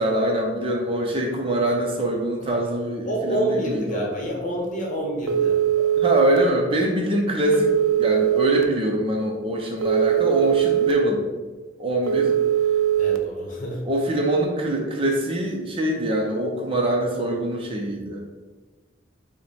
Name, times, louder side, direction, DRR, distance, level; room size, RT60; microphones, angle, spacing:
voice 1, 0.0-4.1 6.0-7.7 8.0-11.2 11.8-12.3 13.8-18.2, right 1 dB, 25° right, 0 dB, 0.6 m, -24 dB
voice 2, 3.1-5.6 13.0-13.8, right 1 dB, 40° left, -1 dB, 1.0 m, -27 dB
Telephone, 5.3-6.4 7.5-8.6 9.8-10.9 12.1-13.2, right 10 dB, 85° right, 0.4 m, -20 dB
5.8 x 2.2 x 4.1 m, 1.3 s
head